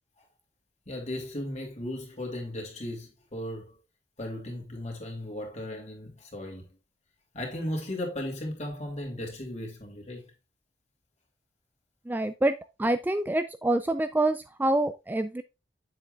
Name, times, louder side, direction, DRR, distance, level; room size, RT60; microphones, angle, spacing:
voice 1, 0.9-3.7 4.2-6.7 7.3-10.3, left 1 dB, 40° left, 2.8 m, -36 dB
voice 2, 12.1-15.4, right 1 dB, 10° right, 0.3 m, -26 dB
7.7 x 7.3 x 2.4 m
head